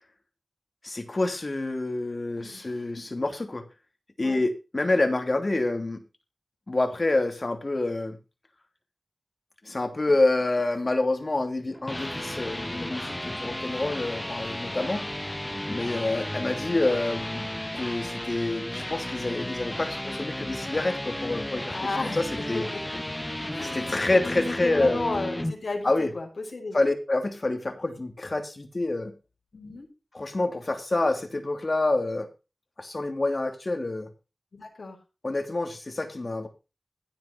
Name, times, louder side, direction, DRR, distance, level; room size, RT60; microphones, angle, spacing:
voice 1, 0.8-3.6 4.2-6.0 6.7-8.2 9.6-15.1 15.7-17.5 17.7-21.7 22.1-22.7 23.6-25.0 25.8-26.1 26.7-29.1 30.1-32.3 32.8-34.1 35.2-36.5, left 2 dB, 45° left, 6 dB, 3.0 m, -27 dB
voice 2, 2.4-3.0 4.2-4.4 21.7-22.2 22.7-23.0 23.5-26.8 29.5-29.9 34.5-35.0, left 3 dB, 85° left, 3 dB, 5.5 m, -34 dB
sound 1, 11.6-25.5, left 1 dB, 15° left, 1.1 m, -34 dB
16.0 x 7.6 x 5.1 m, 0.30 s
wide cardioid pair, 80°, 0 cm